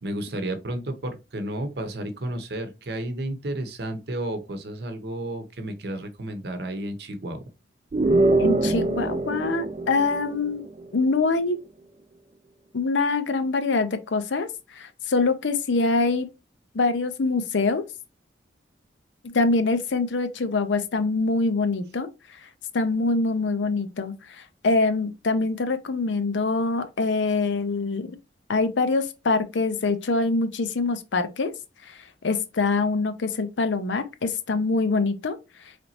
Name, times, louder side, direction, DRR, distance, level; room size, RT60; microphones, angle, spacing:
voice 1, 0.0-7.4, right 1 dB, 60° right, 0.8 m, -32 dB
sound 1, 7.9-10.8, right 2 dB, 35° right, 0.3 m, -23 dB
voice 2, 8.4-10.6 10.9-11.6 12.7-16.3 16.7-17.8 19.2-22.1 22.7-28.1 28.5-31.5 31.8-32.0 32.2-35.4, left 3 dB, 90° left, 0.6 m, -24 dB
4.0 x 3.3 x 2.8 m
head